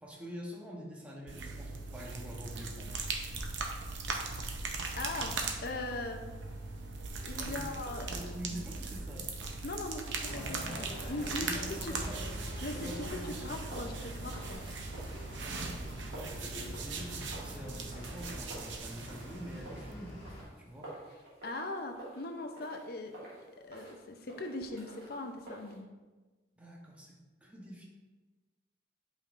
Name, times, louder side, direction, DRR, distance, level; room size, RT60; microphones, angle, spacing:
voice 1, 0.0-3.1 7.3-9.3 11.4-12.2 12.7-13.6 15.4-15.8 16.1-20.1 20.6-20.9 26.6-27.8, equal, 5° right, -3 dB, 1.0 m, -46 dB
sound 1, 1.3-20.2, right 4 dB, 75° right, 0.8 m, -40 dB
voice 2, 5.0-6.2 7.0-8.2 9.6-11.9 12.6-14.8 21.4-25.9, left 2 dB, 55° left, 5 dB, 0.6 m, -40 dB
sound 2, 10.2-20.4, equal, 30° left, 2.0 m, -45 dB
sound 3, 11.8-25.8, right 2 dB, 50° right, 2.1 m, -52 dB
8.2 x 5.2 x 2.6 m, 1.3 s
head